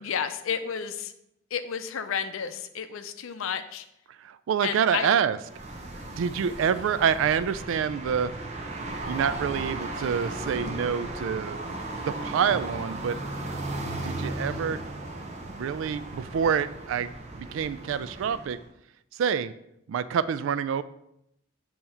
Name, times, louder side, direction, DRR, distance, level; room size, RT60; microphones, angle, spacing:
voice 1, 0.0-1.1 1.5-3.9 4.6-5.1, left 7 dB, 85° left, 9 dB, 0.5 m, -31 dB
voice 2, 4.2-5.4 6.2-8.3 9.0-11.6 12.0-13.2 14.0-14.8 15.4-18.6 19.2-19.5 19.9-20.8, right 7 dB, 75° right, 15 dB, 0.3 m, -27 dB
sound 1, 5.4-18.7, right 2 dB, 35° right, 0.7 m, -36 dB
7.7 x 2.9 x 4.2 m, 0.78 s
head